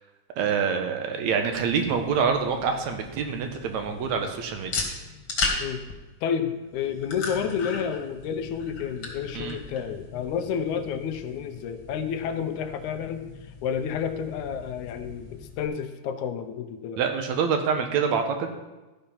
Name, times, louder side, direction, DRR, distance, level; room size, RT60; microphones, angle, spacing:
voice 1, 0.4-4.7 9.3-9.6 17.0-18.5, right 6 dB, 70° right, 5 dB, 2.0 m, -26 dB
sound 1, 1.4-15.7, left 4 dB, 45° left, 2.0 m, -37 dB
voice 2, 6.2-13.3 13.6-17.0, left 7 dB, 75° left, 8 dB, 2.1 m, -30 dB
13.5 x 5.6 x 5.6 m, 1.1 s
omnidirectional pair, 3.8 m